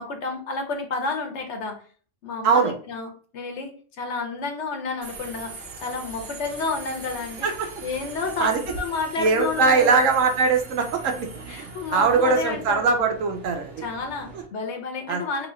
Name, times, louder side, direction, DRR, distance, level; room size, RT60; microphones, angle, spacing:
voice 1, 0.0-1.8 2.2-7.5 7.8-10.1 11.5-12.9 13.8-15.5, left 4 dB, 65° left, 4 dB, 1.0 m, -30 dB
Subway metro underground, 5.0-14.5, right 4 dB, 55° right, 0.8 m, -41 dB
voice 2, 9.2-13.8 15.1-15.2, right 4 dB, 80° right, 4 dB, 1.0 m, -21 dB
3.0 x 2.7 x 3.0 m, 0.43 s
omnidirectional pair, 1.3 m